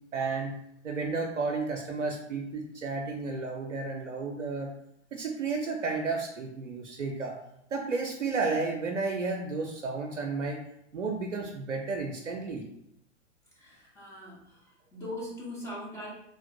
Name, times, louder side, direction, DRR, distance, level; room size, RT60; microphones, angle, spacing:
voice 1, 0.1-0.5 0.8-4.7 5.1-7.4 7.7-10.6 10.9-12.6, right 4 dB, 85° right, 1 dB, 0.5 m, -32 dB
voice 2, 13.5-16.1, left 1 dB, 10° left, -6 dB, 0.4 m, -41 dB
3.2 x 2.5 x 2.6 m, 0.76 s
figure-of-eight pair, 105°, 36 cm